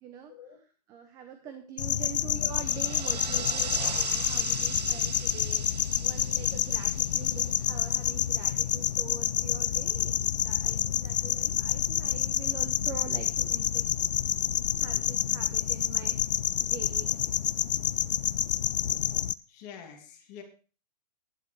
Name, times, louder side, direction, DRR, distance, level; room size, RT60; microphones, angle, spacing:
voice 1, 0.0-5.7 6.0-13.9 14.8-17.3, right 8 dB, 15° right, 7 dB, 0.9 m, -45 dB
sound 1, 1.8-19.3, left 9 dB, 90° left, 0.6 m, -28 dB
sound 2, 2.4-8.3, right 6 dB, 75° right, 1.3 m, -39 dB
voice 2, 3.3-3.7 4.6-4.7 19.5-20.4, left 8 dB, 30° left, 3 dB, 2.8 m, -46 dB
10.5 x 10.5 x 4.7 m, 0.37 s
hypercardioid pair, 160°, 21 cm